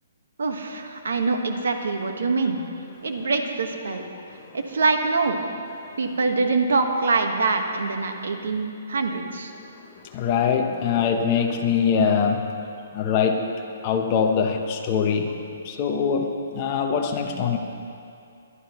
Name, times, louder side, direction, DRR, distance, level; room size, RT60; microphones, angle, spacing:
voice 1, 0.4-2.6 3.0-4.0 4.5-5.4 6.0-9.5, right 3 dB, 85° right, 4 dB, 1.4 m, -24 dB
voice 2, 9.5-12.5 12.9-13.5 13.8-15.4 15.6-17.6, left 6 dB, 20° left, 2 dB, 0.8 m, -23 dB
22.0 x 11.5 x 3.1 m, 2.5 s
hypercardioid pair, 180°, 0 cm